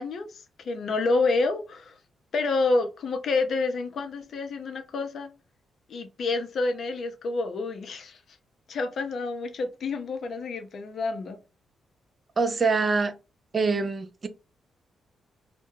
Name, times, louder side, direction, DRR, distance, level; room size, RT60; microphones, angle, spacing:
voice 1, 0.0-1.9 2.3-5.3 5.9-8.2 8.7-11.4, left 3 dB, 65° left, 0.5 m, -28 dB
voice 2, 12.4-13.1 13.5-14.3, right 4 dB, 45° right, 0.4 m, -24 dB
2.1 x 2.1 x 3.0 m
hypercardioid pair, 45°, 0 cm